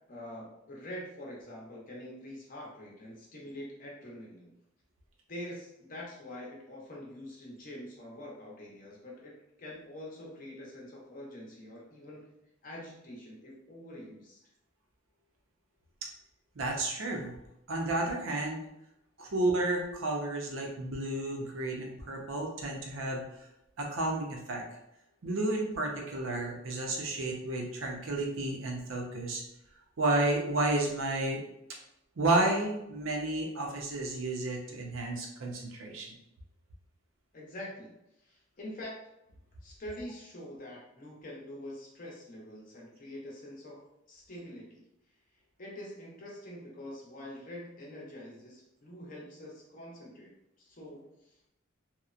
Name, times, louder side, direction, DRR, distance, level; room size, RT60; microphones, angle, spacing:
voice 1, 0.1-4.5 5.3-12.4 12.6-14.4 37.3-39.0 39.6-44.9 45.6-51.5, left 1 dB, 45° left, -3 dB, 0.7 m, -45 dB
voice 2, 16.6-17.3 17.7-18.6 19.2-23.2 23.8-24.6 25.2-29.4 30.0-31.4 32.2-36.1, right 2 dB, 80° right, 0 dB, 0.6 m, -31 dB
2.9 x 2.0 x 2.4 m, 0.84 s
head